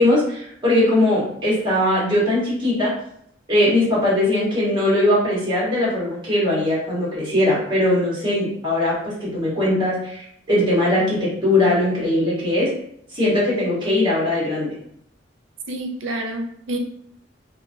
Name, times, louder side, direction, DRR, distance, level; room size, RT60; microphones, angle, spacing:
voice 1, 0.0-2.9 3.5-12.7 13.1-14.8, left 1 dB, 25° right, -6 dB, 1.2 m, -20 dB
voice 2, 15.7-16.8, right 1 dB, 85° right, 3 dB, 0.5 m, -28 dB
2.8 x 2.5 x 2.6 m, 0.71 s
head